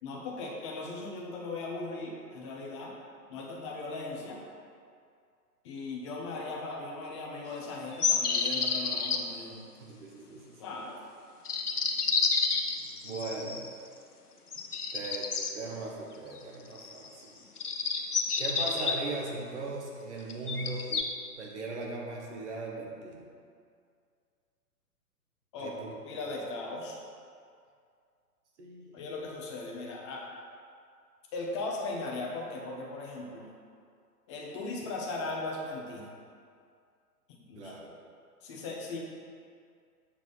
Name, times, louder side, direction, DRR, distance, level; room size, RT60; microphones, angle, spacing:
voice 1, 0.0-2.9 3.3-4.4 5.6-9.6 10.6-11.0 25.5-25.7 26.0-27.0 28.9-30.2 31.3-33.5 34.3-36.1 37.5-37.7 38.4-39.0, left 3 dB, 20° left, -1 dB, 0.8 m, -38 dB
sound 1, 8.0-9.2 11.5-13.7 14.5-15.5 16.8-17.1 17.6-19.0 20.3-21.0, left 5 dB, 70° left, 0.9 m, -29 dB
voice 2, 9.8-10.6 12.8-13.7 14.9-17.4 18.4-21.1 21.4-23.3 25.6-25.9 26.3-26.4 28.6-29.3 37.6-37.9, right 2 dB, 45° right, -1 dB, 1.5 m, -39 dB
7.4 x 6.0 x 4.1 m, 2.3 s
figure-of-eight pair, 120°, 47 cm